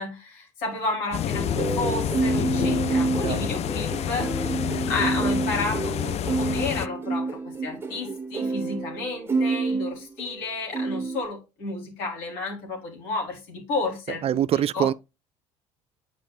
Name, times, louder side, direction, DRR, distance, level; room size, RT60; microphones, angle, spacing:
voice 1, 0.0-14.9, left 3 dB, 75° left, 3.3 m, -32 dB
sound 1, 1.1-6.9, left 11 dB, 45° left, 0.4 m, -28 dB
sound 2, 1.3-10.4 10.7-11.2, right 4 dB, 15° right, 1.2 m, -28 dB
voice 2, 14.2-14.9, right 11 dB, 40° right, 0.3 m, -24 dB
9.0 x 4.9 x 2.3 m
hypercardioid pair, 75°, 15 cm